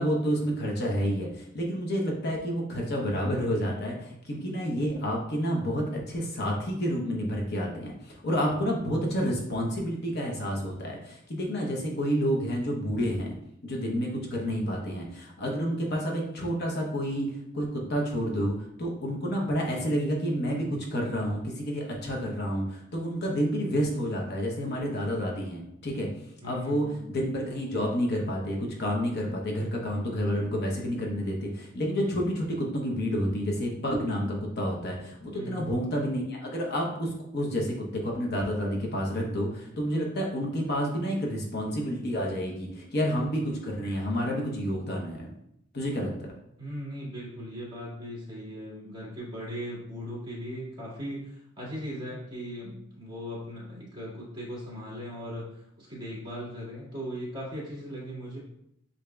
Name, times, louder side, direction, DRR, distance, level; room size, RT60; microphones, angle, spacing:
voice 1, 0.0-13.4 13.6-17.3 17.5-26.1 26.4-45.2 45.7-46.3, equal, 50° left, -1 dB, 0.8 m, -29 dB
voice 2, 26.4-27.1 35.3-35.7 46.6-55.5 55.8-58.4, equal, 20° right, -6 dB, 1.8 m, -38 dB
8.1 x 2.8 x 2.3 m, 0.76 s
head